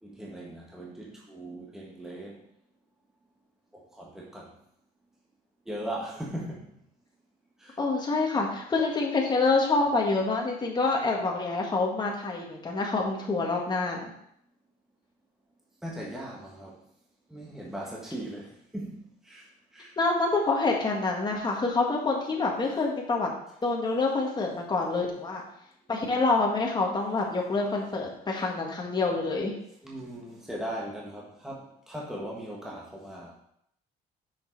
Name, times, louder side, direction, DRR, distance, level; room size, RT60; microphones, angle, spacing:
voice 1, 0.0-2.4 3.7-4.5 5.6-6.8 7.6-7.8 15.8-16.8 17.3-19.9 29.8-33.3, right 1 dB, 5° right, -4 dB, 1.5 m, -39 dB
voice 2, 7.8-14.1 20.0-23.3 23.6-25.4 25.9-29.5, left 3 dB, 25° left, -1 dB, 1.7 m, -27 dB
6.4 x 5.2 x 4.7 m, 0.73 s
cardioid pair, 110°, 17 cm